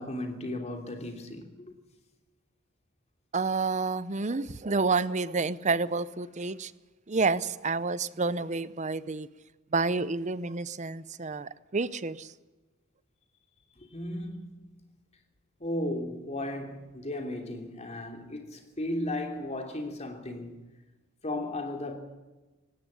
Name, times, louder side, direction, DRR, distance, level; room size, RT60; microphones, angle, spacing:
voice 1, 0.0-1.7 13.8-14.7 15.6-20.7 21.2-22.0, left 1 dB, 30° left, 3.1 m, -35 dB
voice 2, 3.3-6.7 7.1-9.3 9.7-12.3, right 4 dB, 30° right, 0.7 m, -29 dB
18.5 x 16.5 x 9.7 m
head